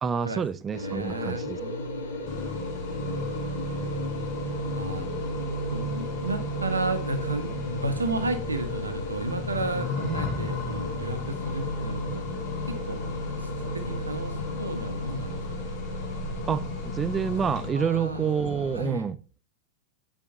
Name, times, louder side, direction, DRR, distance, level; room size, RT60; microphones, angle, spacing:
voice 1, 0.0-1.6 16.5-19.2, right 7 dB, 20° right, 0.4 m, -28 dB
sound 1, 0.7-18.9, left 2 dB, 65° left, 1.3 m, -37 dB
voice 2, 0.8-2.4 3.6-3.9 4.8-5.1 5.7-12.2 12.7-13.0 13.3-15.7 17.7-18.3 18.7-19.1, right 2 dB, 80° right, 1.0 m, -33 dB
Accelerating revving vroom, 2.3-17.7, left 1 dB, 30° left, 1.7 m, -34 dB
8.5 x 5.2 x 2.7 m
figure-of-eight pair, 90°, 0 cm